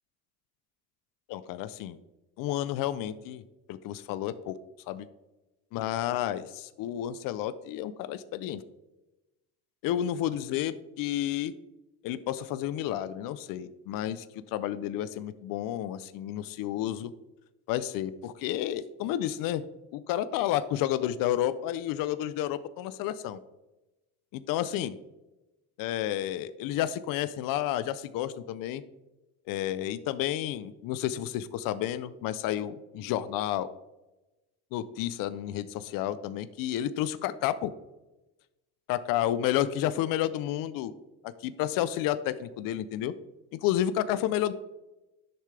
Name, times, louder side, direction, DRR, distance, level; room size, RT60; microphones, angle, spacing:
voice 1, 1.3-2.0 2.4-3.4 3.7-4.6 4.9-5.1 5.7-8.6 9.8-11.5 12.0-17.1 17.7-19.6 19.9-23.4 24.3-25.0 25.8-28.8 29.5-33.7 34.7-37.7 38.9-40.9 41.2-43.1 43.5-44.5, left 12 dB, 65° left, 14 dB, 0.6 m, -31 dB
11.0 x 6.8 x 3.3 m, 1.0 s
supercardioid pair, 100°, 36 cm